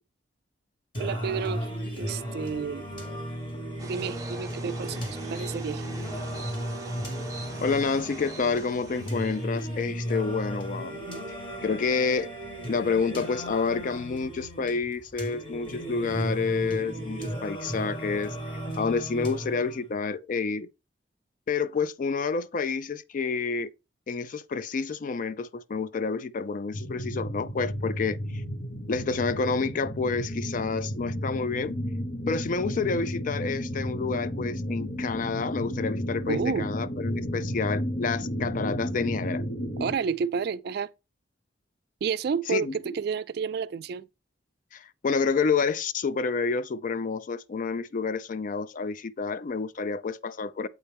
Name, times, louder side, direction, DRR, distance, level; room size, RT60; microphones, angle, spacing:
Singing, 0.9-19.9, equal, 25° left, 1.6 m, -35 dB
voice 1, 1.0-1.7 2.0-2.8 3.8-5.0 5.3-5.9 36.3-36.7 39.8-40.9 42.0-44.1, right 6 dB, 55° right, 0.3 m, -30 dB
sound 1, 3.8-9.4, right 3 dB, 20° right, 0.7 m, -44 dB
voice 2, 7.6-11.0 11.3-12.3 12.7-18.4 18.8-20.7 21.5-23.7 24.1-28.4 28.9-31.8 32.3-39.4 42.5-43.0 44.7-50.7, left 4 dB, 45° left, 0.3 m, -29 dB
sound 2, 26.7-39.9, equal, 65° left, 1.1 m, -33 dB
8.0 x 4.3 x 3.4 m
head